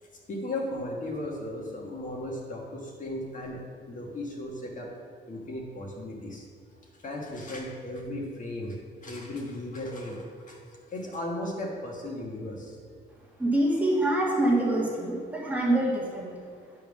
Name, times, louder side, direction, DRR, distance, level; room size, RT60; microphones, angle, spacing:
voice 1, 0.0-4.9 5.3-6.5 6.9-12.8, left 1 dB, 40° left, -1 dB, 1.4 m, -36 dB
voice 2, 13.4-16.3, right 1 dB, 10° right, -4 dB, 1.5 m, -25 dB
10.0 x 3.6 x 6.3 m, 2.3 s
cardioid pair, 125°, 19 cm